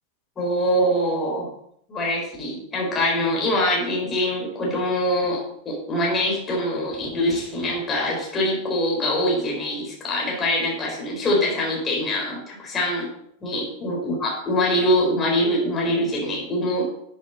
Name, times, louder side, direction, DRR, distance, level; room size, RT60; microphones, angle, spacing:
voice 1, 0.4-1.5 1.9-13.1 13.4-16.9, left 1 dB, 20° left, -2 dB, 3.9 m, -24 dB
11.0 x 7.6 x 4.0 m, 0.70 s
figure-of-eight pair, 90°, 0 cm